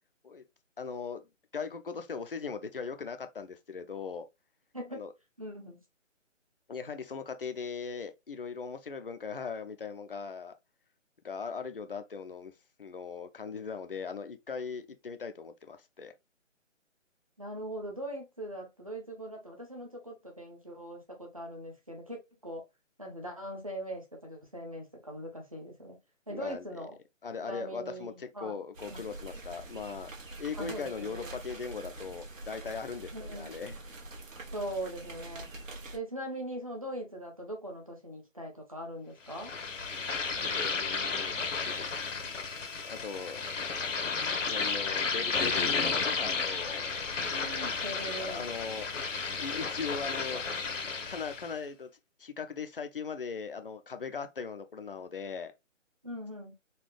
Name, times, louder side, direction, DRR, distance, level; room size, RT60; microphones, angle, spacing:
voice 1, 0.8-1.2 1.5-4.3 4.9-5.1 6.7-10.5 11.2-12.5 12.8-16.1 26.3-26.7 27.2-30.1 30.4-33.8 40.4-41.4 41.6-41.9 42.8-43.6 44.4-46.9 48.2-48.9 49.4-50.4 51.1-51.9 52.2-55.5, left 5 dB, 45° left, 0.5 m, -39 dB
voice 2, 5.4-5.8 17.4-22.6 23.0-26.0 26.3-27.0 27.4-28.6 28.9-29.1 30.5-31.4 33.1-33.6 34.5-35.5 35.9-39.5 47.2-48.5 56.0-56.6, right 1 dB, 30° right, 0.7 m, -41 dB
Rain under a tree, 28.7-36.0, right 2 dB, 85° right, 1.3 m, -45 dB
sound 1, 39.3-51.5, left 4 dB, 70° left, 1.0 m, -33 dB
4.1 x 2.3 x 3.2 m
hypercardioid pair, 175°, 38 cm